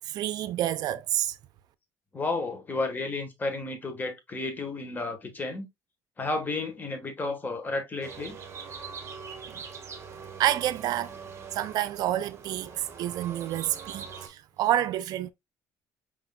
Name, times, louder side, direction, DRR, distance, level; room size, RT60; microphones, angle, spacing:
voice 1, 0.1-1.4 9.5-9.6 10.4-11.2 11.5-15.3, right 12 dB, 70° right, 0.4 m, -28 dB
voice 2, 2.1-5.7 6.2-8.4, left 3 dB, 25° left, 1.3 m, -32 dB
sound 1, 8.0-14.3, right 6 dB, 40° right, 1.3 m, -43 dB
4.8 x 3.8 x 2.2 m
cardioid pair, 100°, 7 cm